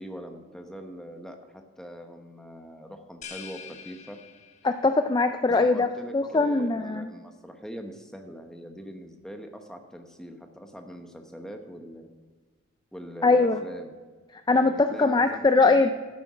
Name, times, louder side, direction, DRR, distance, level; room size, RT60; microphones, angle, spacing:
voice 1, 0.0-4.2 5.5-12.1 12.9-13.9 14.5-15.9, equal, 5° left, 4 dB, 1.0 m, -42 dB
sound 1, 3.2-4.9, left 7 dB, 35° left, 1.2 m, -44 dB
voice 2, 4.6-5.9 6.1-7.1 13.2-13.6 14.3-15.9, left 3 dB, 20° left, 8 dB, 0.3 m, -21 dB
12.0 x 9.7 x 5.0 m, 1.4 s
head